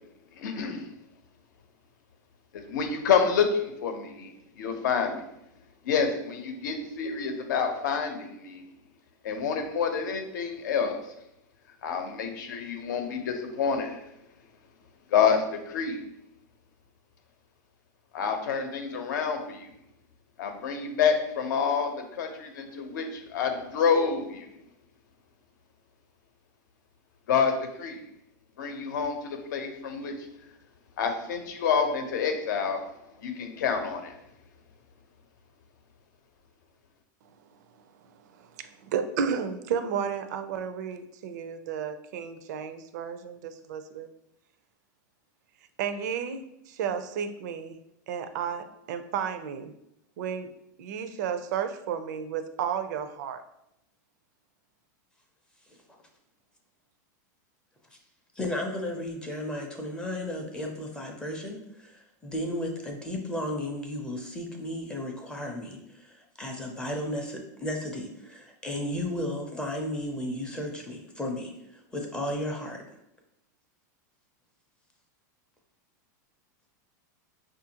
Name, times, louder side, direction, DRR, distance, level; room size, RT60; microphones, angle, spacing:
voice 1, 0.4-0.8 2.5-4.3 4.6-5.2 5.8-8.6 9.2-11.0 11.8-14.0 15.1-16.0 18.1-19.7 20.4-24.5 27.3-28.0 28.6-30.3 31.0-32.9 33.2-34.1, left 6 dB, 80° left, 5 dB, 0.7 m, -28 dB
voice 2, 37.9-44.1 45.8-46.4 46.7-47.8 48.1-49.7 50.2-50.5 50.8-53.4, right 7 dB, 65° right, 9 dB, 0.4 m, -33 dB
voice 3, 58.4-72.8, left 1 dB, 10° left, 1 dB, 0.4 m, -34 dB
5.4 x 2.5 x 2.8 m, 0.81 s
supercardioid pair, 150°, 10 cm